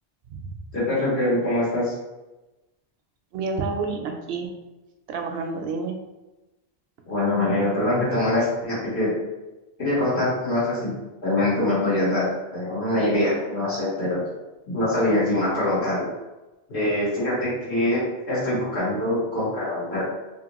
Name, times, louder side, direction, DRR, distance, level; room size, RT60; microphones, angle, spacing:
voice 1, 0.7-1.9 7.1-9.1 9.8-10.9 11.2-12.3 12.5-14.2 14.7-16.1 16.7-20.0, left 1 dB, 80° left, -9 dB, 1.5 m, -23 dB
voice 2, 3.3-4.5 5.1-6.0, right 4 dB, 70° right, 3 dB, 0.8 m, -29 dB
3.0 x 2.7 x 2.9 m, 1.1 s
omnidirectional pair, 1.1 m